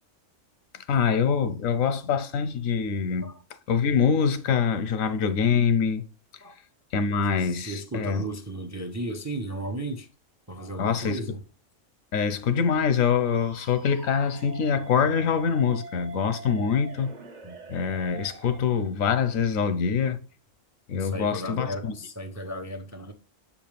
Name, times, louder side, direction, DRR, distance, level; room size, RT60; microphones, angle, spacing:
voice 1, 0.9-3.3 3.7-6.0 6.9-8.2 10.8-11.2 12.1-17.1 17.7-20.2 20.9-21.7, left 6 dB, 90° left, 1.2 m, -24 dB
voice 2, 7.4-10.1 10.5-11.4 17.4-17.6 20.9-23.1, right 1 dB, 25° right, 0.4 m, -35 dB
sound 1, 13.3-18.6, right 2 dB, 40° right, 0.8 m, -44 dB
7.3 x 5.0 x 3.3 m
omnidirectional pair, 1.4 m